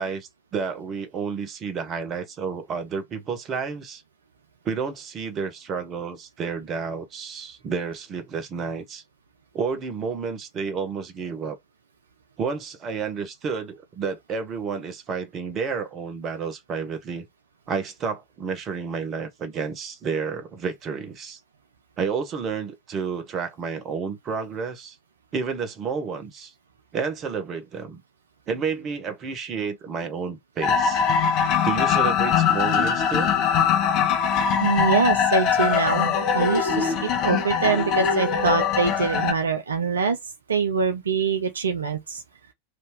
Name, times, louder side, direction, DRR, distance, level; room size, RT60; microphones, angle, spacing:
voice 1, 0.0-4.0 4.6-9.0 9.5-11.6 12.4-17.2 17.7-21.4 22.0-25.0 25.3-26.5 26.9-28.0 28.5-31.0 31.6-33.3, right 5 dB, 30° right, 1.1 m, -30 dB
sound 1, 30.6-39.3, left 7 dB, 40° left, 1.1 m, -22 dB
voice 2, 34.6-40.2 40.5-42.2, right 5 dB, 70° right, 0.5 m, -24 dB
3.2 x 2.8 x 3.5 m
figure-of-eight pair, 90°, 0 cm